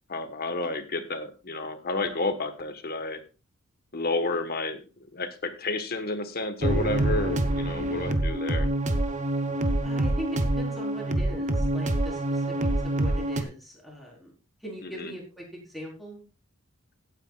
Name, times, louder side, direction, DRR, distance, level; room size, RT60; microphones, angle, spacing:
voice 1, 0.1-3.2 3.9-4.8 5.1-8.7 14.8-15.1, left 2 dB, 45° left, 9 dB, 1.3 m, -31 dB
sound 1, 6.6-13.4, right 1 dB, 35° right, 1.1 m, -26 dB
voice 2, 9.8-12.5 12.8-14.3 14.6-16.2, equal, ahead, -3 dB, 4.3 m, -40 dB
16.5 x 9.1 x 2.4 m, 0.32 s
head